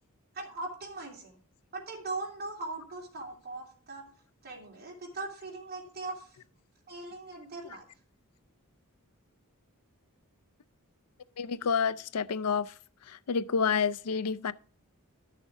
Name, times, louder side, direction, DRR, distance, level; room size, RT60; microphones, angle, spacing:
voice 1, 0.3-1.4 1.7-4.0 4.4-6.4 6.9-7.8, right 3 dB, 45° right, 3.0 m, -40 dB
voice 2, 11.4-12.7 13.1-14.5, left 6 dB, 90° left, 0.5 m, -29 dB
12.0 x 6.6 x 3.5 m
head